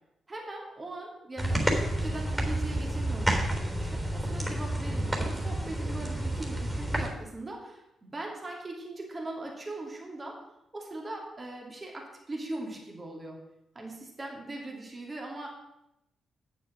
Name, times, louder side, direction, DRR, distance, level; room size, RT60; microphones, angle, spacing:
voice 1, 0.3-10.4 10.7-13.4 13.7-15.5, right 2 dB, 35° right, 0 dB, 2.7 m, -40 dB
sound 1, 1.4-7.1, right 1 dB, 10° right, 3.7 m, -30 dB
8.7 x 6.9 x 6.2 m, 0.85 s
hypercardioid pair, 40°, 0 cm